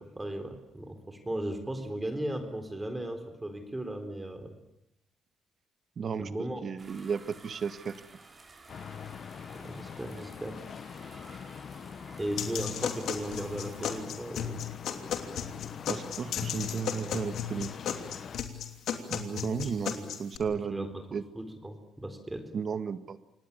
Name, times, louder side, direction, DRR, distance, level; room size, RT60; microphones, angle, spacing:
voice 1, 0.0-4.5 6.2-6.6 9.5-10.6 12.2-14.6 19.6-20.1 20.5-22.5, right 1 dB, 15° right, 7 dB, 4.0 m, -37 dB
voice 2, 6.0-6.3 6.6-7.9 15.9-17.7 19.1-20.9 21.1-21.2 22.5-23.2, right 6 dB, 50° right, 10 dB, 1.8 m, -34 dB
sound 1, 6.8-14.0, right 3 dB, 35° right, 4.4 m, -53 dB
sound 2, 8.7-18.4, left 7 dB, 55° left, 0.9 m, -44 dB
sound 3, 12.4-20.4, left 9 dB, 75° left, 3.0 m, -35 dB
27.5 x 19.5 x 8.7 m, 0.83 s
cardioid pair, 90°, 0 cm